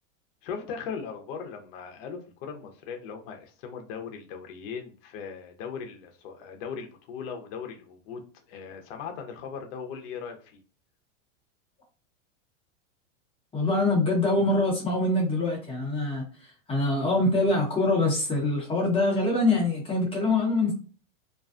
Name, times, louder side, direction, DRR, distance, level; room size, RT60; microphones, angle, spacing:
voice 1, 0.4-8.2 8.5-10.6, left 6 dB, 50° left, 0.7 m, -38 dB
voice 2, 13.5-16.2 16.7-20.7, left 2 dB, 15° left, 0.9 m, -24 dB
2.5 x 2.2 x 2.4 m
supercardioid pair, 130°, 37 cm